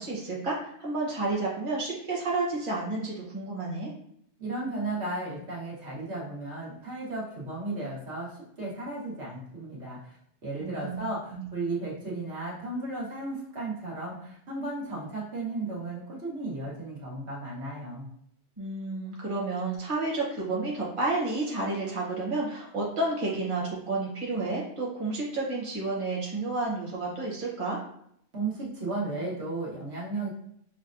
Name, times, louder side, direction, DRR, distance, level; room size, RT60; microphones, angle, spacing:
voice 1, 0.0-3.9 10.6-11.0 11.3-11.4 18.6-27.8, right 2 dB, 30° right, -4 dB, 1.0 m, -31 dB
voice 2, 4.4-10.2 10.4-18.1 28.3-30.3, right 2 dB, 70° right, -5 dB, 1.5 m, -34 dB
6.0 x 2.1 x 2.5 m, 0.70 s
omnidirectional pair, 1.2 m